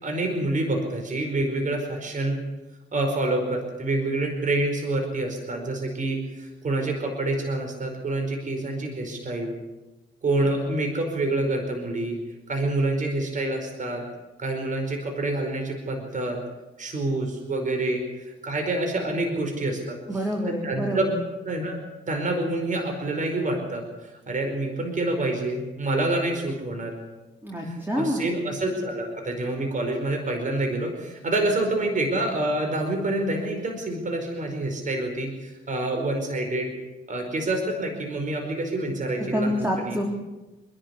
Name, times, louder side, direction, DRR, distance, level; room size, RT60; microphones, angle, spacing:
voice 1, 0.0-2.4 2.9-9.5 10.2-12.2 12.5-14.0 14.4-16.4 16.8-20.3 20.6-21.0 21.4-21.8 22.1-26.9 27.6-36.7 37.1-40.0, right 2 dB, 40° right, 3 dB, 5.0 m, -27 dB
voice 2, 20.1-21.2 27.4-28.4 39.2-40.1, equal, 10° right, 0 dB, 3.9 m, -27 dB
27.0 x 11.5 x 9.9 m, 1.1 s
cardioid pair, 90°, 20 cm